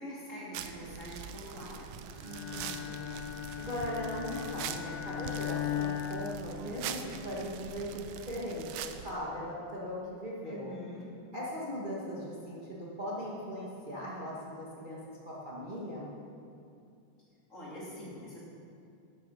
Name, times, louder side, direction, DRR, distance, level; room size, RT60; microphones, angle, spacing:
voice 1, 0.0-1.9 10.4-11.1 17.5-18.4, equal, 25° left, -7 dB, 2.9 m, -44 dB
sound 1, 0.5-9.2, right 9 dB, 85° right, 1.5 m, -43 dB
Bowed string instrument, 2.2-7.2, left 11 dB, 85° left, 2.1 m, -38 dB
voice 2, 2.2-10.7 11.3-16.1, equal, 60° right, -6 dB, 0.5 m, -39 dB
12.5 x 8.4 x 5.6 m, 2.6 s
omnidirectional pair, 3.6 m